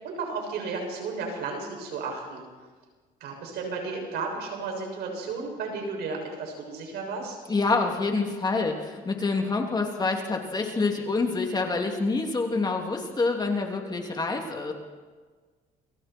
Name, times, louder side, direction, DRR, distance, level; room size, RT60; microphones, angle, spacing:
voice 1, 0.0-2.4 3.2-7.4, right 4 dB, 75° right, 2 dB, 7.0 m, -33 dB
voice 2, 7.5-14.7, left 3 dB, 25° left, 2 dB, 3.0 m, -27 dB
29.5 x 23.5 x 4.6 m, 1.4 s
cardioid pair, 110°, 17 cm